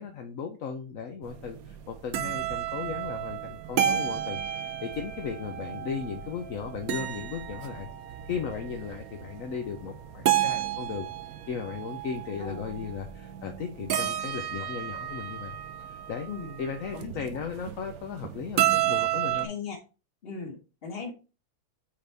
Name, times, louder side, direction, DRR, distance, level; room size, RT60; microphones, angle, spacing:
voice 1, 0.0-7.9 8.3-11.1 11.5-15.6 15.9-16.3 16.6-19.5, left 6 dB, 65° left, 4 dB, 1.2 m, -36 dB
sound 1, 1.2-19.5, right 11 dB, 75° right, 1.1 m, -32 dB
voice 2, 16.2-16.6 16.9-17.4 19.3-19.8 20.2-21.1, left 5 dB, 40° left, 3 dB, 1.7 m, -38 dB
8.4 x 4.1 x 3.4 m, 0.32 s
omnidirectional pair, 1.6 m